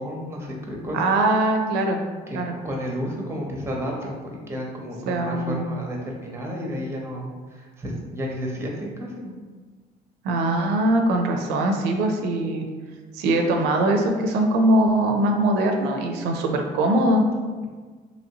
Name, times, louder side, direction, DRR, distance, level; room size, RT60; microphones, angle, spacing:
voice 1, 0.0-1.0 2.3-9.3, equal, 15° right, -1 dB, 0.6 m, -32 dB
voice 2, 0.9-2.0 2.3-2.6 5.1-5.7 10.2-12.7 13.1-17.2, right 1 dB, 85° right, 3 dB, 0.4 m, -21 dB
2.9 x 2.6 x 2.8 m, 1.4 s
cardioid pair, 110°, 17 cm